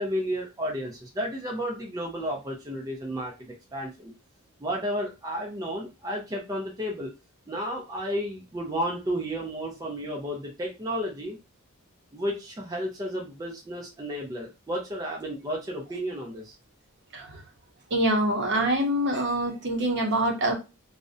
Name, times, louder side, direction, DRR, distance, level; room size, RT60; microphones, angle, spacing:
voice 1, 0.0-4.1 4.6-7.1 7.5-11.4 12.1-16.5, equal, 15° right, -1 dB, 0.4 m, -32 dB
voice 2, 17.9-20.5, right 1 dB, 55° right, 3 dB, 0.7 m, -25 dB
2.5 x 2.0 x 2.5 m, 0.28 s
head